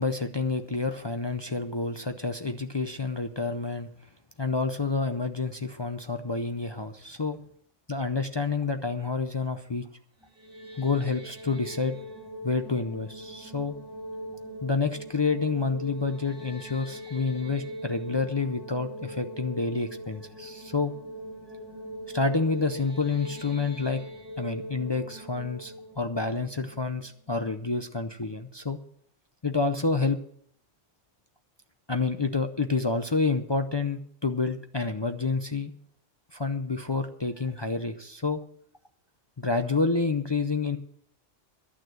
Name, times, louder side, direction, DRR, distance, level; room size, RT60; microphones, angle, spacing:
voice 1, 0.0-3.9 4.4-7.4 7.9-9.9 10.8-11.9 12.4-13.7 14.6-20.9 22.1-24.0 24.4-28.8 29.4-30.2 31.9-35.7 36.3-38.4 39.4-40.8, left 4 dB, 35° left, 6 dB, 0.4 m, -28 dB
sound 1, 10.2-27.3, right 1 dB, 10° right, 2.4 m, -41 dB
11.5 x 9.2 x 7.7 m, 0.66 s
omnidirectional pair, 1.3 m